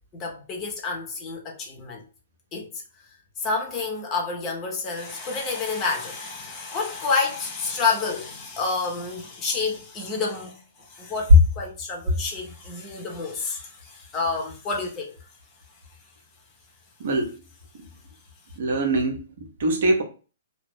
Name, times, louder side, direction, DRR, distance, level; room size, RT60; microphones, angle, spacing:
voice 1, 0.1-2.0 2.5-2.7 3.4-15.2, left 4 dB, 25° left, 1.0 m, -29 dB
voice 2, 17.0-17.4 17.7-17.9 18.6-20.0, right 2 dB, 60° right, 0.9 m, -24 dB
2.9 x 2.3 x 3.6 m
figure-of-eight pair, 120°, 0 cm